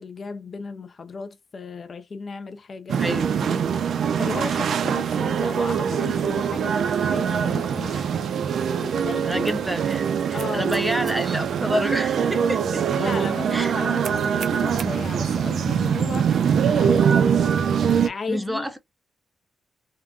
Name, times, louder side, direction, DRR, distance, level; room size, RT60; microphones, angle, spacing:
voice 1, 0.0-3.1 3.4-3.6 4.2-8.1 8.6-9.5 10.3-10.9 12.9-17.4 18.0-18.7, left 4 dB, 40° left, 0.4 m, -35 dB
sound 1, 2.9-18.1, right 7 dB, 65° right, 0.5 m, -23 dB
voice 2, 3.0-3.4 8.8-8.9 9.2-12.9 13.5-13.7 18.3-18.8, equal, 5° right, 0.7 m, -28 dB
3.7 x 2.2 x 2.2 m
cardioid pair, 125°, 0 cm